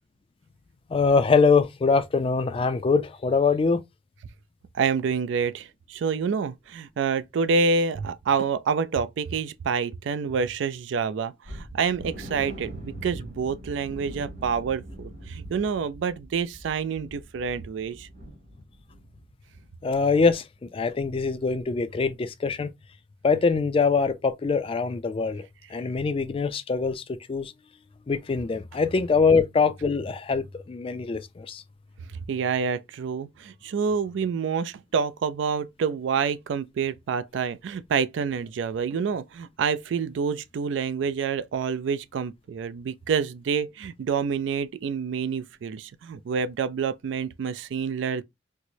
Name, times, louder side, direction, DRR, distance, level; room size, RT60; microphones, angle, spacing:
voice 1, 0.9-3.8 19.8-22.7 23.2-27.5 28.1-31.6, left 4 dB, 30° left, 0.3 m, -23 dB
voice 2, 4.7-18.1 32.3-48.2, right 5 dB, 75° right, 0.3 m, -27 dB
sound 1, 11.5-19.2 19.5-19.7 20.1-20.2, right 1 dB, 60° right, 2.2 m, -43 dB
4.5 x 2.0 x 2.6 m
head